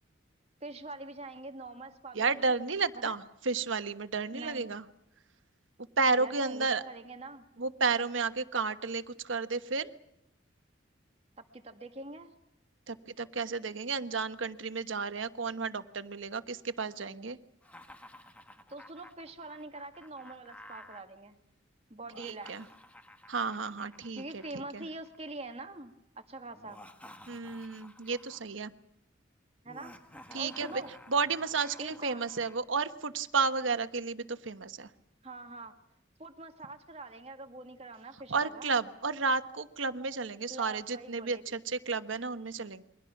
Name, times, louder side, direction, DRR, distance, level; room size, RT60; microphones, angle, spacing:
voice 1, 0.6-2.5 2.9-3.1 4.3-4.7 6.2-7.4 11.4-12.3 18.7-21.4 21.9-22.6 24.1-26.8 29.6-30.0 30.4-30.9 31.8-32.3 35.2-35.7 36.2-38.8 40.5-41.6, right 2 dB, 30° right, 6 dB, 1.9 m, -44 dB
voice 2, 2.1-4.8 6.0-6.8 7.6-9.9 12.9-17.4 22.2-22.6 23.3-24.4 24.7-24.9 27.3-28.7 30.3-30.7 31.1-34.9 38.3-42.8, right 4 dB, 80° right, 10 dB, 1.3 m, -32 dB
Laughter, 17.6-21.0 22.0-25.3 26.5-28.5 29.6-32.6, left 1 dB, 5° left, 1.6 m, -53 dB
29.0 x 23.0 x 6.0 m, 0.82 s
head